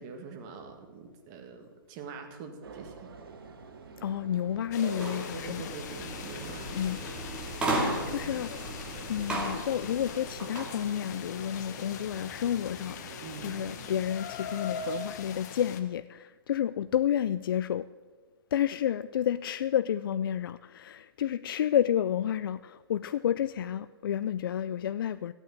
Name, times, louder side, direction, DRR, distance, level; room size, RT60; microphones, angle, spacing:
voice 1, 0.0-3.1 5.3-6.8 13.2-13.6, right 5 dB, 30° right, 4 dB, 1.8 m, -44 dB
sound 1, 2.6-14.1, right 4 dB, 70° right, 2.2 m, -47 dB
voice 2, 4.0-5.6 6.7-7.0 7.7-8.6 9.1-17.9 18.5-25.3, left 10 dB, 65° left, 14 dB, 0.4 m, -30 dB
sound 2, 4.7-15.8, left 6 dB, 45° left, 1.3 m, -42 dB
sound 3, 4.9-10.7, right 1 dB, 10° right, 2.6 m, -35 dB
15.5 x 8.9 x 7.3 m, 1.4 s
hypercardioid pair, 155°, 13 cm